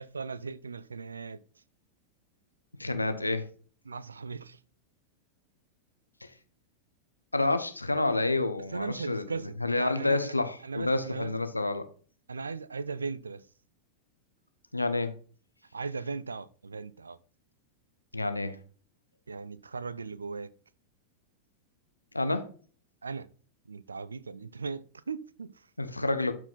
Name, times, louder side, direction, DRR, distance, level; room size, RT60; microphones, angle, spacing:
voice 1, 0.0-1.4 3.8-4.6 8.7-10.3 10.6-11.3 12.3-13.4 15.7-17.2 19.3-20.5 23.0-23.3 23.7-25.7, right 4 dB, 75° right, 0.4 m, -38 dB
voice 2, 2.8-3.5 6.2-6.3 7.3-9.3 9.6-11.9 14.7-15.1 18.1-18.6 22.1-22.5 25.8-26.3, left 2 dB, 85° left, 0.9 m, -29 dB
12.5 x 4.6 x 4.0 m
figure-of-eight pair, 90°, 0 cm